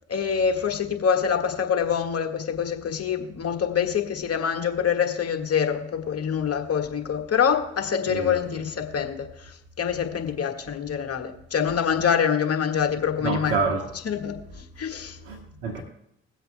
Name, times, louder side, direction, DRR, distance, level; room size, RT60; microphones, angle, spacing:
voice 1, 0.1-13.7 14.0-15.2, left 7 dB, 50° left, 1.7 m, -25 dB
voice 2, 13.2-13.8 15.2-15.8, right 4 dB, 80° right, 1.1 m, -27 dB
22.0 x 8.0 x 2.2 m
hypercardioid pair, 40°, 31 cm